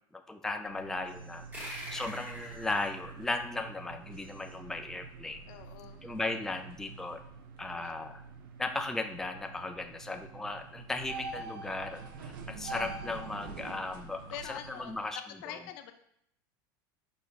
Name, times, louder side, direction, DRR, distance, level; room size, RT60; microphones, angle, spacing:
voice 1, 0.1-5.4 6.0-7.2 7.6-8.2 8.6-15.2 15.5-15.6, left 2 dB, 5° left, 5 dB, 0.4 m, -37 dB
sound 1, 0.6-15.0, right 4 dB, 85° right, 0.6 m, -46 dB
sound 2, 1.5-4.5, equal, 20° right, 1.8 m, -46 dB
voice 2, 5.5-6.1 7.8-7.9 14.3-15.9, left 10 dB, 70° left, 8 dB, 0.5 m, -44 dB
5.2 x 4.2 x 2.3 m, 0.71 s
supercardioid pair, 105°, 11 cm